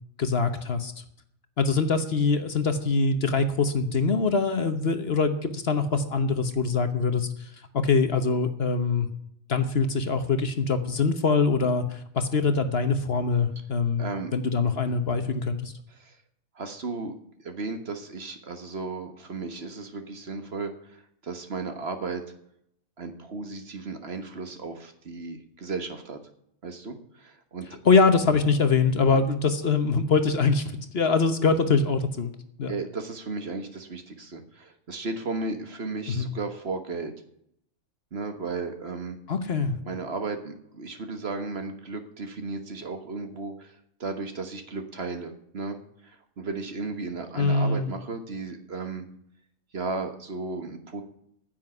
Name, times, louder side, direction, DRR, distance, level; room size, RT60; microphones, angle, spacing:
voice 1, 0.2-0.9 1.6-9.1 9.5-15.7 27.8-32.3 32.6-32.7 36.1-36.3 39.3-39.8 47.3-47.9, left 4 dB, 50° left, 9 dB, 1.2 m, -24 dB
voice 2, 14.0-14.3 16.0-16.2 16.5-17.1 17.4-22.2 23.0-26.2 26.6-27.8 29.1-29.2 32.7-37.1 38.1-39.2 39.8-45.8 46.0-49.1 49.7-51.0, right 3 dB, 50° right, 7 dB, 1.6 m, -35 dB
10.0 x 7.7 x 9.6 m, 0.72 s
omnidirectional pair, 1.4 m